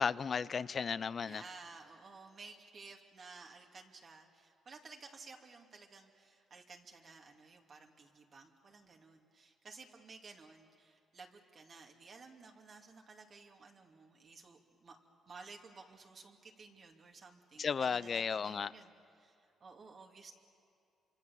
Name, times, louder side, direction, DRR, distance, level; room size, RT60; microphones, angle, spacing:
voice 1, 0.0-1.4 17.6-18.7, left 6 dB, 45° left, 17 dB, 0.6 m, -34 dB
voice 2, 1.2-15.0 15.3-20.3, right 4 dB, 45° right, 2 dB, 2.6 m, -55 dB
26.5 x 25.0 x 7.2 m, 2.6 s
cardioid pair, 90°, 0 cm